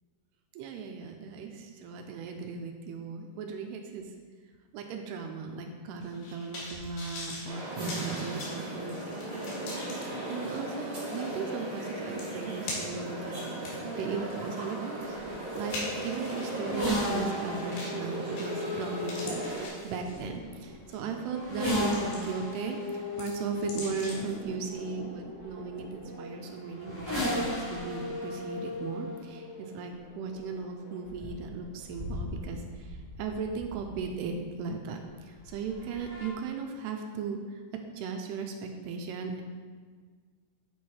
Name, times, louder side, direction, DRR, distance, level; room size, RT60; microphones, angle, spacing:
voice 1, 0.5-4.1 4.7-13.5 14.0-37.6 37.9-39.4, right 5 dB, 85° right, 4 dB, 2.6 m, -37 dB
sound 1, 6.0-9.9 10.5-10.6 11.8-11.9 12.2-13.1 13.5-16.6 17.7-18.0 18.4-18.8 19.0-20.4 20.9-21.1 21.6-22.5 22.8-24.3 24.7-24.8, left 2 dB, 80° left, 3.8 m, -42 dB
sound 2, 7.5-19.7, right 1 dB, 55° right, 0.7 m, -36 dB
sound 3, 16.5-34.3 35.4-36.3, left 1 dB, 15° left, 0.9 m, -36 dB
8.8 x 4.7 x 4.3 m, 1.5 s
omnidirectional pair, 4.7 m